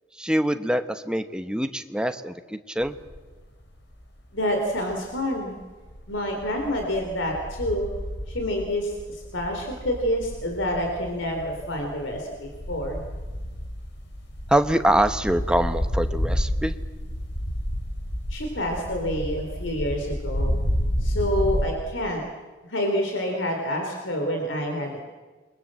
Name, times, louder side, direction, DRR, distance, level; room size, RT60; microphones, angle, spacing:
voice 1, 0.2-3.0 14.5-16.7, right 1 dB, 5° right, 8 dB, 1.1 m, -24 dB
sound 1, 2.8-3.4 3.8-5.2 5.6-21.7, equal, 65° left, 4.0 m, -31 dB
voice 2, 4.3-5.6 6.1-7.9 8.3-13.0 18.3-20.6 21.0-22.2 22.6-25.1, equal, 85° left, 3 dB, 3.8 m, -28 dB
28.5 x 22.5 x 7.7 m, 1.3 s
head